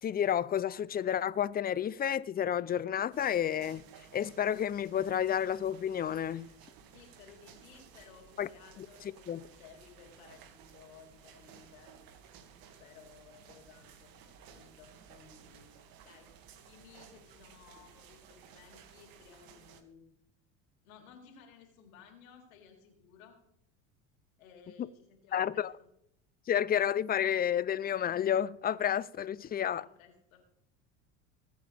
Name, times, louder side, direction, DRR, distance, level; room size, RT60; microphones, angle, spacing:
voice 1, 0.0-3.9 4.1-6.5 8.4-8.5 8.8-8.9 9.3-9.4 25.3-25.7 26.5-29.9, left 9 dB, 25° left, 0.5 m, -30 dB
sound 1, 3.1-19.8, right 7 dB, 55° right, 2.3 m, -56 dB
voice 2, 6.9-11.9 12.8-16.3 16.6-20.0 20.8-23.4 24.4-25.9 29.8-30.4, left 6 dB, 80° left, 3.9 m, -57 dB
21.0 x 8.9 x 3.5 m
hypercardioid pair, 90°, 40 cm